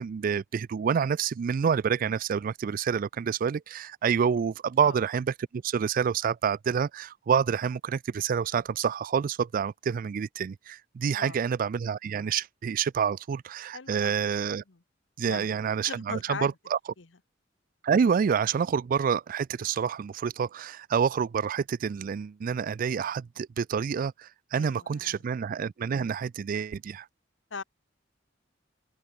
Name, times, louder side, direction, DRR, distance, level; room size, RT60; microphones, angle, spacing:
voice 1, 0.0-14.6 15.2-16.8 17.8-27.1, right 7 dB, 45° right, 0.3 m, -28 dB
voice 2, 13.7-14.2 14.7-14.8 15.2-15.5 15.9-16.5 17.0-17.1 24.5-25.2 27.5-27.6, left 5 dB, 80° left, 1.2 m, -39 dB
open air
head